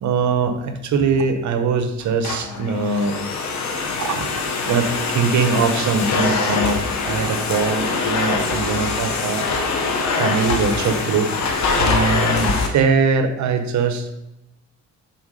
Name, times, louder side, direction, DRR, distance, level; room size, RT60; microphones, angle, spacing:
voice 1, 0.0-3.2 4.0-4.3 4.7-9.4 10.1-11.3 11.7-14.1, right 4 dB, 70° right, 8 dB, 1.0 m, -21 dB
Domestic sounds home sounds, 2.0-12.7, left 4 dB, 65° left, 1.2 m, -23 dB
6.9 x 4.1 x 5.4 m, 0.87 s
cardioid pair, 90°, 30 cm